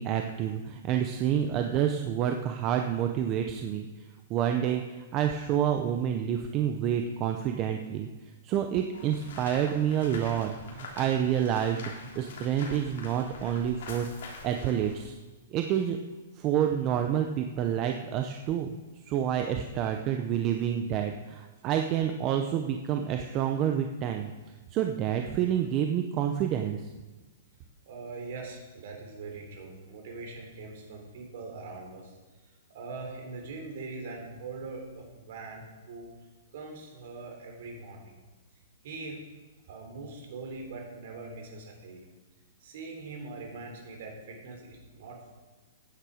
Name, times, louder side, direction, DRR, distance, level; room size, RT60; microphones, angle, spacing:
voice 1, 0.0-3.9 4.3-8.1 8.4-11.8 12.1-14.1 14.4-15.1 15.5-16.0 16.4-18.7 19.1-24.3 24.7-26.8, right 9 dB, 20° right, 5 dB, 0.6 m, -28 dB
sound 1, 8.9-15.0, left 4 dB, 55° left, 3.1 m, -45 dB
voice 2, 27.9-32.1 32.4-36.1 36.5-38.1 38.8-39.2 39.7-42.1 42.6-45.3, right 3 dB, 45° right, 2 dB, 3.5 m, -42 dB
15.0 x 9.7 x 5.0 m, 1.2 s
hypercardioid pair, 175°, 0 cm